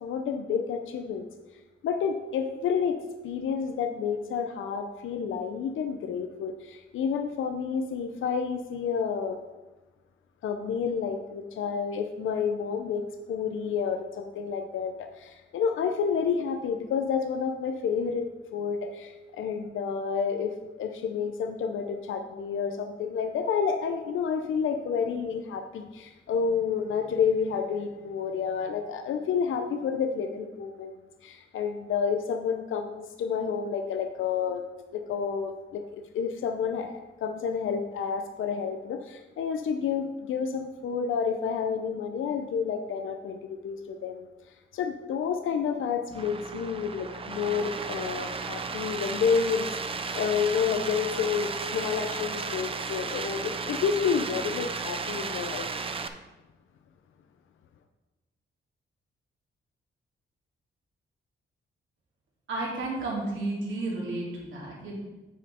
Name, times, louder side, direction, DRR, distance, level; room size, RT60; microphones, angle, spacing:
voice 1, 0.0-1.3 1.8-9.4 10.4-30.9 31.2-34.6 34.9-44.3 44.7-49.8 50.1-55.7, left 6 dB, 85° left, 6 dB, 0.6 m, -30 dB
sound 1, 46.1-56.1, right 4 dB, 30° right, 0.5 m, -34 dB
voice 2, 62.5-64.9, right 2 dB, 75° right, -4 dB, 2.6 m, -32 dB
8.9 x 5.2 x 4.3 m, 1.1 s
wide cardioid pair, 150°, 20 cm